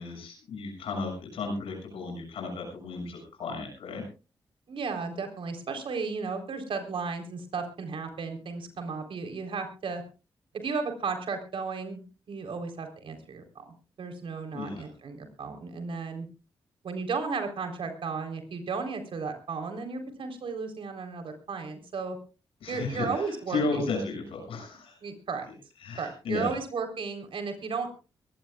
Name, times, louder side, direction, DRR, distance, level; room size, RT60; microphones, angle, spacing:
voice 1, 0.0-4.0 14.5-14.9 22.6-25.0 25.8-26.5, left 3 dB, 85° left, 2 dB, 7.0 m, -34 dB
voice 2, 4.7-10.0 10.5-12.0 12.3-13.6 14.0-16.3 16.8-22.2 22.7-23.6 25.0-25.5 26.0-27.9, right 4 dB, 70° right, 5 dB, 3.9 m, -34 dB
23.0 x 16.5 x 2.4 m, 0.32 s
cardioid pair, 55°, 9 cm